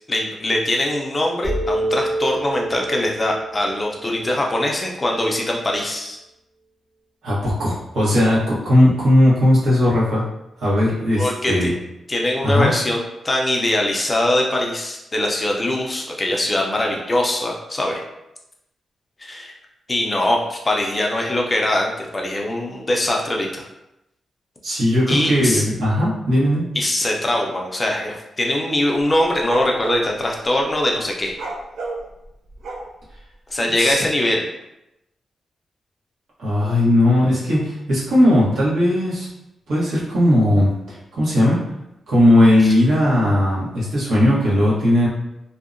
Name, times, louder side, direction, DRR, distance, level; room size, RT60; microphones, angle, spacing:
voice 1, 0.1-6.2 11.2-11.7 12.1-18.0 19.2-19.5 19.9-23.7 25.1-25.6 26.8-31.4 33.5-34.5, left 1 dB, 20° left, 0 dB, 0.3 m, -22 dB
sound 1, 1.4-5.0, right 1 dB, 20° right, 0.7 m, -27 dB
voice 2, 7.2-10.2 10.6-11.7 12.4-12.7 24.6-26.7 33.8-34.0 36.4-39.3 39.7-41.6 42.1-45.1, left 1 dB, 90° right, -7 dB, 1.0 m, -17 dB
sound 2, 29.4-30.1 31.3-33.1, right 2 dB, 70° right, 0.4 m, -30 dB
2.7 x 2.1 x 2.4 m, 0.88 s
wide cardioid pair, 160°, 0 cm